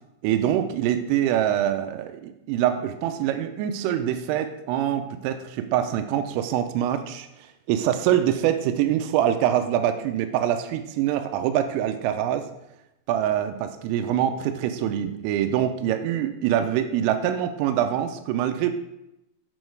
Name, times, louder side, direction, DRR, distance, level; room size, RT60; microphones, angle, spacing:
voice 1, 0.2-12.5 13.1-18.7, right 10 dB, 85° right, 8 dB, 3.2 m, -24 dB
8.7 x 6.3 x 4.6 m, 0.87 s
omnidirectional pair, 5.8 m